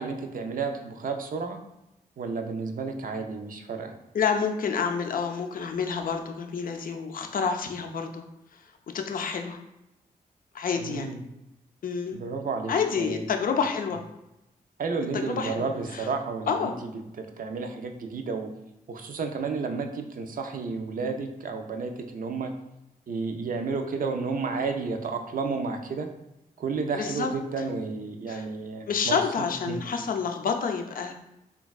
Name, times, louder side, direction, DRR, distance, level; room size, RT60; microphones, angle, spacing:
voice 1, 0.0-1.6 2.2-3.9 10.8-11.2 12.1-12.7 13.0-13.2 14.8-16.7 17.2-18.5 18.9-22.5 23.1-26.1 26.6-29.8, right 4 dB, 55° right, 5 dB, 0.4 m, -31 dB
voice 2, 4.1-8.2 8.5-8.6 8.9-9.6 10.5-11.1 11.8-12.2 12.7-14.0 15.1-16.1 16.5-16.8 26.9-27.3 27.6-27.7 28.3-28.5 28.9-31.1, left 6 dB, 60° left, 4 dB, 0.4 m, -28 dB
3.3 x 2.2 x 2.3 m, 0.89 s
cardioid pair, 45°, 17 cm